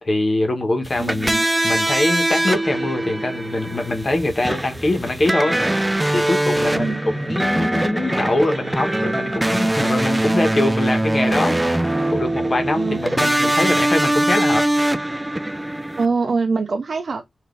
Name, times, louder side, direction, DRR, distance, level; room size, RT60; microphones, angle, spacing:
voice 1, 0.0-5.6 6.1-11.6 12.1-14.7, left 2 dB, 40° left, 1.1 m, -23 dB
sound 1, 0.8-16.1, right 1 dB, 15° right, 0.4 m, -22 dB
voice 2, 1.0-1.5 6.7-7.0 12.7-13.2 16.0-17.3, right 4 dB, 65° right, 0.5 m, -24 dB
3.9 x 2.6 x 3.7 m
wide cardioid pair, 105°, 0 cm